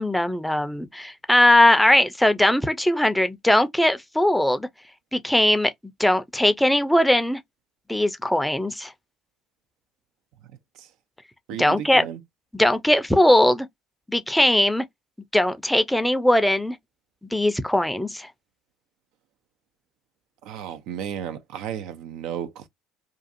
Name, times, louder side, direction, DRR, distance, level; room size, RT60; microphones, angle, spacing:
voice 1, 0.0-4.7 5.1-5.7 6.0-7.4 7.9-8.9 11.6-12.1 12.5-13.7 14.1-14.8 15.3-16.8 17.3-18.3, left 1 dB, 5° left, 0.5 m, -20 dB
voice 2, 11.5-12.2 20.4-22.7, right 9 dB, 70° right, 0.4 m, -33 dB
2.4 x 2.4 x 2.5 m
hypercardioid pair, 65°, 0 cm